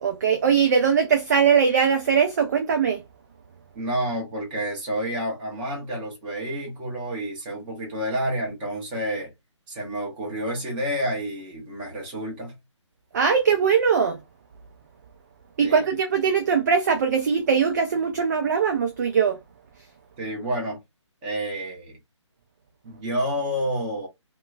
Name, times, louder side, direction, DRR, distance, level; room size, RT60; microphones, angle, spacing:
voice 1, 0.0-3.0 13.1-14.2 15.6-19.4, right 6 dB, 35° right, 0.5 m, -21 dB
voice 2, 3.7-9.3 9.7-12.6 15.6-15.9 20.2-20.8 21.2-22.0 22.8-24.1, equal, 20° right, 1.1 m, -29 dB
2.9 x 2.2 x 2.4 m
figure-of-eight pair, 145°, 16 cm